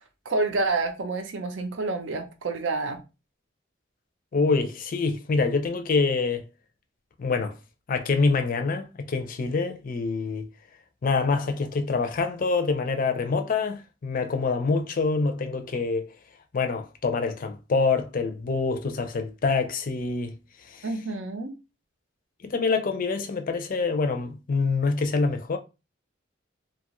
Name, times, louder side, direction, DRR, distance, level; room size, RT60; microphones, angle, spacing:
voice 1, 0.3-3.0 20.8-21.5, right 3 dB, 80° right, 0.6 m, -28 dB
voice 2, 4.3-6.4 7.2-7.6 7.9-10.5 11.0-16.1 16.5-20.4 20.7-20.9 22.4-25.6, left 4 dB, 45° left, 0.4 m, -26 dB
2.8 x 2.3 x 2.9 m
head